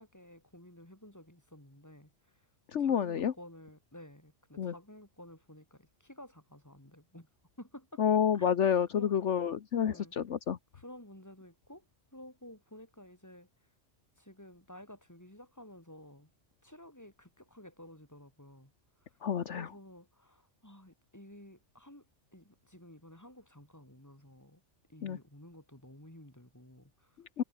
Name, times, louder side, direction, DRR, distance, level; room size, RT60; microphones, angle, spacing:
voice 1, 0.0-2.5 2.8-7.3 7.6-8.0 8.3-8.5 8.9-9.1 9.8-10.1 10.7-11.8 12.1-13.5 14.2-16.3 16.6-18.7 19.0-19.2 19.5-22.0 22.3-24.6 24.9-27.2, left 1 dB, 15° left, 4.9 m, -53 dB
voice 2, 2.7-3.3 4.6-4.7 8.0-10.6 19.2-19.7 25.0-25.2 27.4-27.5, left 8 dB, 70° left, 1.3 m, -29 dB
omnidirectional pair, 1.3 m